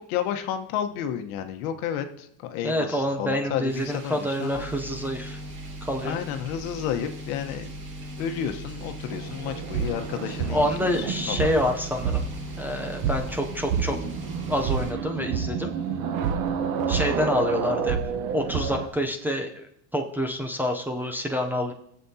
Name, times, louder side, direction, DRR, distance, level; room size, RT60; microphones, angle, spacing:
voice 1, 0.0-4.6 6.0-7.7 8.2-11.0 11.3-11.6, left 9 dB, 85° left, 7 dB, 1.2 m, -31 dB
voice 2, 2.6-5.4 5.8-6.2 10.5-12.2 12.6-14.0 14.5-15.8 16.9-18.0 18.3-19.7 19.9-21.7, equal, 5° right, 0 dB, 0.5 m, -27 dB
sound 1, 3.7-14.9, right 3 dB, 25° right, 1.9 m, -47 dB
sound 2, 4.5-14.8, equal, 45° left, 1.6 m, -39 dB
sound 3, 9.1-18.9, right 7 dB, 60° right, 1.0 m, -29 dB
21.0 x 7.6 x 2.8 m, 0.75 s
cardioid pair, 160°, 42 cm